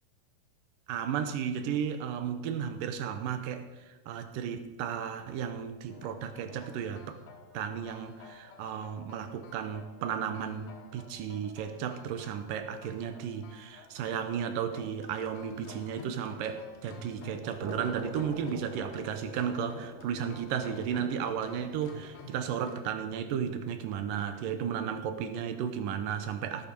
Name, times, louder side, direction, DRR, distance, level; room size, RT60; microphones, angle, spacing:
voice 1, 0.9-7.2 7.5-26.7, right 8 dB, 70° right, 8 dB, 2.5 m, -34 dB
sound 1, 5.2-11.1 11.3-11.5 11.9-12.0 12.3-12.4 12.8-12.9 15.7-15.8 17.2-24.6, right 3 dB, 55° right, 2.4 m, -48 dB
sound 2, 5.9-22.8, left 4 dB, 80° left, 3.5 m, -51 dB
17.0 x 7.5 x 5.4 m, 1.2 s
omnidirectional pair, 4.2 m